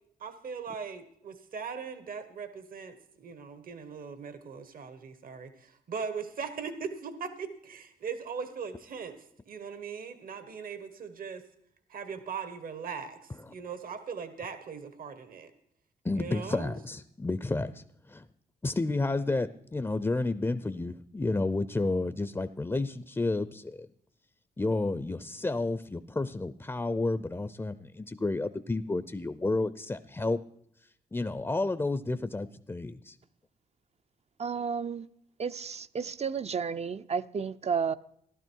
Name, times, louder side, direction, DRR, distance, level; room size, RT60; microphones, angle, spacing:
voice 1, 0.2-11.4 11.9-15.5 16.1-16.7, right 6 dB, 60° right, 1.2 m, -40 dB
voice 2, 16.0-18.2 18.6-23.9 24.6-30.4 31.1-33.2, left 2 dB, 15° left, 0.6 m, -31 dB
voice 3, 34.4-35.1 35.4-37.9, right 6 dB, 40° right, 0.6 m, -32 dB
15.0 x 12.0 x 4.6 m
cardioid pair, 65°, 16 cm